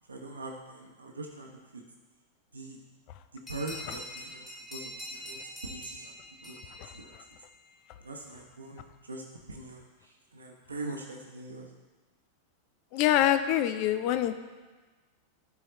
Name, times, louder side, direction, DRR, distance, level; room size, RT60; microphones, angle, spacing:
voice 1, 0.1-1.8 2.5-2.8 3.3-7.2 8.0-9.2 9.5-11.7, right 2 dB, 75° right, 0 dB, 1.0 m, -42 dB
sound 1, 3.5-7.7, left 1 dB, 20° left, 1.9 m, -44 dB
voice 2, 12.9-14.3, left 11 dB, 45° left, 11 dB, 0.5 m, -25 dB
13.0 x 4.3 x 3.1 m, 1.3 s
figure-of-eight pair, 90°, 0 cm